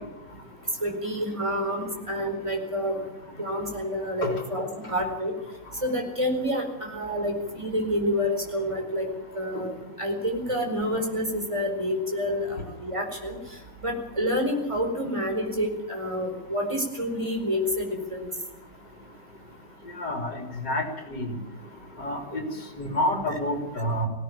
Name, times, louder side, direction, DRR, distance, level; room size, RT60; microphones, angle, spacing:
voice 1, 0.8-3.0 3.4-5.3 5.8-9.1 9.3-9.7 10.0-13.4 13.8-18.3, equal, 15° right, 3 dB, 4.6 m, -28 dB
voice 2, 20.0-20.4 20.6-21.3 22.0-22.4 22.8-24.1, equal, 80° left, 4 dB, 4.2 m, -28 dB
19.5 x 17.0 x 8.9 m, 1.0 s
omnidirectional pair, 1.9 m